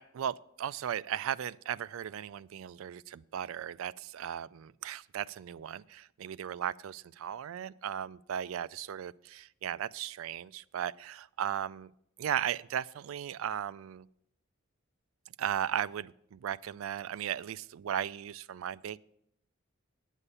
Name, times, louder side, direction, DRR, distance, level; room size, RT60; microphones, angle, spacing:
voice 1, 0.0-11.9 12.2-14.1 15.4-19.0, right 9 dB, 75° right, 20 dB, 0.3 m, -36 dB
9.9 x 8.3 x 5.5 m, 0.73 s
head